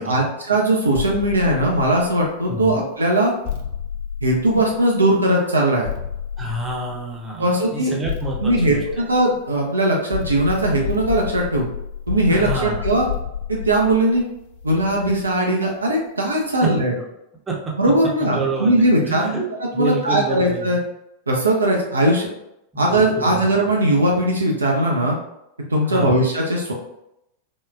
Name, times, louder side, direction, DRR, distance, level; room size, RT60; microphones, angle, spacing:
voice 1, 0.0-3.3 4.2-5.9 7.4-7.9 8.4-11.6 12.1-13.0 13.5-14.2 14.6-16.9 17.8-19.3 19.6-20.8 21.3-22.3 22.8-25.1 25.7-26.7, right 1 dB, 75° right, -1 dB, 0.5 m, -19 dB
sound 1, 0.9-2.4 3.4-5.1 5.8-7.2 8.0-9.6 10.1-15.4, left 8 dB, 50° left, 0.4 m, -30 dB
voice 2, 6.4-9.0 12.3-12.9 16.6-16.7 17.5-17.7 18.2-19.4 19.7-20.7 22.7-23.4 25.9-26.2, right 2 dB, 15° right, -2 dB, 0.8 m, -28 dB
3.5 x 2.3 x 2.4 m, 0.83 s
figure-of-eight pair, 90°, 0 cm